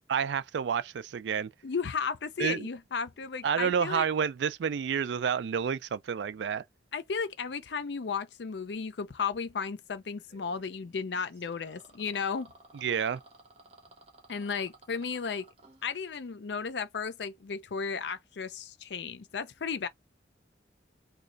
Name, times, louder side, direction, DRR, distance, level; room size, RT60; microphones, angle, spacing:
voice 1, 0.1-1.5 2.4-2.7 3.4-6.6 12.8-13.2, right 7 dB, 80° right, 0.3 m, -29 dB
voice 2, 1.6-4.1 6.9-12.5 14.3-15.5 15.8-19.9, left 5 dB, 75° left, 0.5 m, -34 dB
sound 1, 10.3-15.9, right 2 dB, 35° right, 1.1 m, -57 dB
3.1 x 2.3 x 3.8 m
head